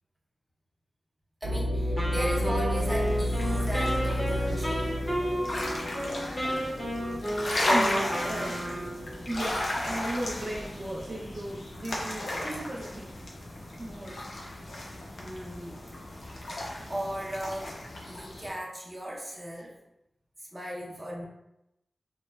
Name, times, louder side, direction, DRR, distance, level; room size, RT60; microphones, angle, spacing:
voice 1, 1.4-5.0 15.2-15.8 16.5-17.8 18.1-19.7 20.4-21.2, equal, 15° right, -5 dB, 0.7 m, -37 dB
sound 1, 1.4-11.4 11.9-12.0 12.6-13.0, equal, 85° right, 0.8 m, -33 dB
Wind instrument woodwind instrument, 2.0-9.1, equal, 25° left, 0.7 m, -32 dB
sound 2, 2.7-18.5, left 1 dB, 85° left, 0.5 m, -35 dB
voice 2, 7.7-8.6 9.0-13.1 13.8-14.2, right 1 dB, 55° right, -4 dB, 0.4 m, -36 dB
2.9 x 2.1 x 2.2 m, 0.86 s
wide cardioid pair, 80°, 0 cm